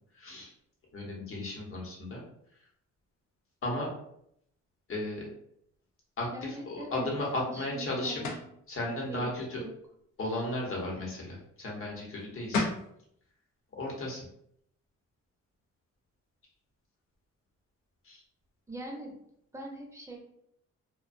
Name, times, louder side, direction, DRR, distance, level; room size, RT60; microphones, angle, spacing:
voice 1, 0.1-0.5 0.9-2.2 3.6-3.9 4.9-5.3 6.2-8.2 8.7-9.6 10.2-12.7 13.8-14.2 18.0-18.2, left 1 dB, 45° left, -2 dB, 1.0 m, -35 dB
voice 2, 6.3-7.1 7.5-8.4 9.1-9.3 9.6-9.7 18.7-19.1 19.5-20.2, right 1 dB, 10° right, -1 dB, 0.7 m, -42 dB
sound 1, 8.2-8.5 12.2-12.3 12.5-12.9, left 3 dB, 80° left, 0.6 m, -30 dB
2.5 x 2.2 x 2.4 m, 0.72 s
cardioid pair, 90°, 30 cm